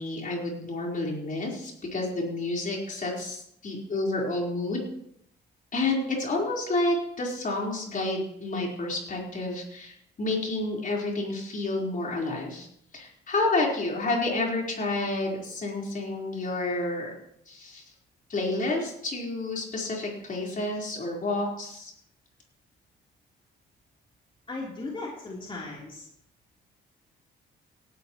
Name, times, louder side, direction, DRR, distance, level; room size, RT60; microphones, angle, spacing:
voice 1, 0.0-4.8 5.7-12.7 12.9-17.2 17.5-17.8 18.3-21.9, left 2 dB, 40° left, -2 dB, 4.4 m, -30 dB
voice 2, 24.5-26.0, left 2 dB, 25° left, -4 dB, 3.6 m, -37 dB
17.5 x 12.0 x 3.1 m, 0.73 s
cardioid pair, 90°, 20 cm